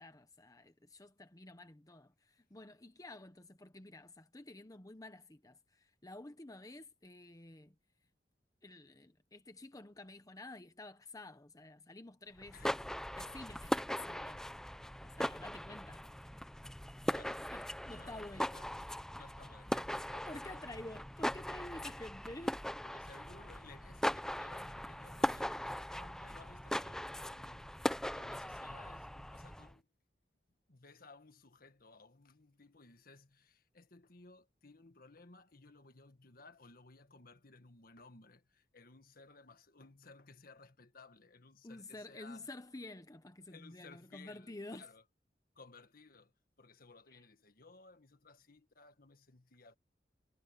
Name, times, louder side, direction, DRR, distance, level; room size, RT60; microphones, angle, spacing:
voice 1, 0.0-7.7 8.6-12.7 13.2-14.4 15.0-16.0 17.5-18.5 20.0-22.6 41.6-44.8 47.1-47.2, left 2 dB, 20° left, 0.9 m, -50 dB
sound 1, 12.4-29.7, equal, 5° left, 0.6 m, -39 dB
voice 2, 12.5-12.8 17.0-17.5 17.8-18.7 19.1-20.7 22.8-29.9 30.7-42.5 43.4-45.0 45.5-49.8, left 3 dB, 55° left, 1.7 m, -59 dB
head